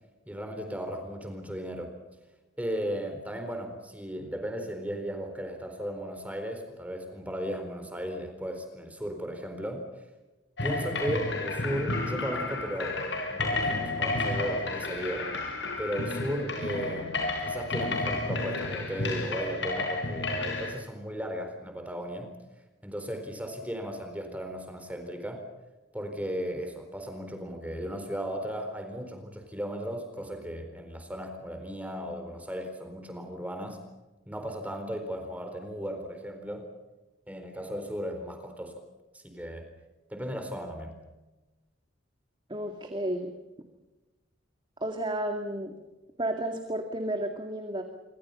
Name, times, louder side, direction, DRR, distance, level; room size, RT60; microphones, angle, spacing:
voice 1, 0.3-1.9 2.6-9.8 10.6-13.0 13.3-15.2 15.8-22.3 22.8-25.4 25.9-33.8 34.3-36.7 37.3-38.8 39.1-39.7 40.1-40.9, equal, 10° right, 5 dB, 4.1 m, -36 dB
sound 1, 10.6-20.7, left 2 dB, 65° left, 7.1 m, -31 dB
voice 2, 42.5-43.3 44.8-45.7 46.2-47.8, right 1 dB, 25° right, 4 dB, 2.2 m, -32 dB
28.5 x 24.5 x 5.6 m, 1.1 s
head